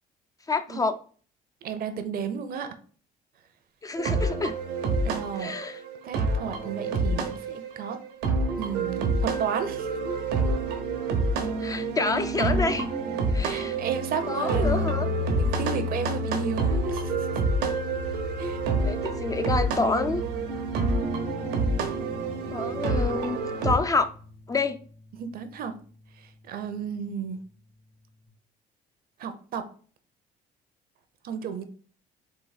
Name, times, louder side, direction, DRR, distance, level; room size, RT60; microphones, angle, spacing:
voice 1, 0.5-1.0 3.8-4.6 5.4-5.8 11.6-12.9 13.3-13.8 14.3-15.1 18.8-20.2 22.5-24.1 24.5-24.8, left 3 dB, 20° left, 10 dB, 0.3 m, -27 dB
voice 2, 1.6-2.8 5.0-5.6 6.0-8.0 8.6-9.9 13.4-17.3 18.4-18.6 25.2-25.7 26.2-27.4 29.2-29.7 31.2-31.6, right 7 dB, 60° right, 9 dB, 0.7 m, -33 dB
sound 1, 4.0-23.8, right 3 dB, 85° right, 1.0 m, -28 dB
sound 2, 14.6-23.6, left 6 dB, 60° left, 1.0 m, -35 dB
sound 3, 21.0-28.3, left 4 dB, 80° left, 2.0 m, -47 dB
4.0 x 2.7 x 4.0 m, 0.42 s
cardioid pair, 110°, 17 cm